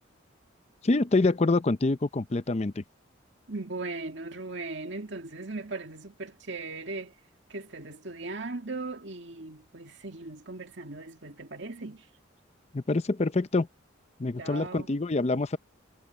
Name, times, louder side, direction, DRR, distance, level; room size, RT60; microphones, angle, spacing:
voice 1, 0.8-2.8 12.7-13.7 14.2-15.6, left 2 dB, 35° left, 0.5 m, -26 dB
voice 2, 3.5-7.1 7.5-12.1 14.4-14.9, right 3 dB, 65° right, 2.2 m, -38 dB
head